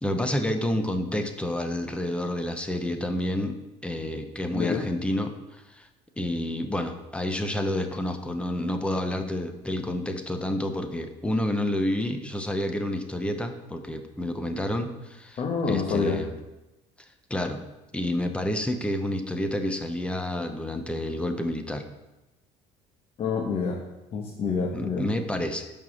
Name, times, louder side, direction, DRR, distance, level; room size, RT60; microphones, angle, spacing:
voice 1, 0.0-5.3 5.7-5.9 6.2-15.4 15.7-16.4 17.3-17.6 17.9-21.8 24.7-25.7, left 1 dB, 10° left, 6 dB, 0.8 m, -29 dB
voice 2, 4.5-4.8 15.4-16.2 23.2-23.8 24.1-25.0, left 5 dB, 45° left, -1 dB, 1.3 m, -27 dB
7.3 x 5.4 x 6.5 m, 1.0 s
cardioid pair, 115°, 13 cm